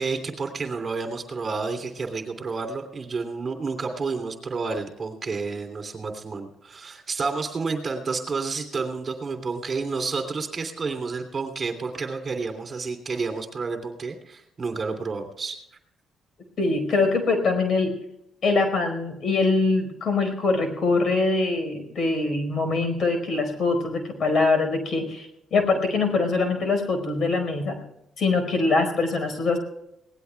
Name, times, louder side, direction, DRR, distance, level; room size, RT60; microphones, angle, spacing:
voice 1, 0.0-15.6, right 4 dB, 40° right, 4 dB, 3.0 m, -30 dB
voice 2, 16.6-17.9 18.4-27.8 28.2-29.6, left 3 dB, 55° left, 6 dB, 4.8 m, -23 dB
22.5 x 18.0 x 2.3 m, 0.83 s
cardioid pair, 90°, 0 cm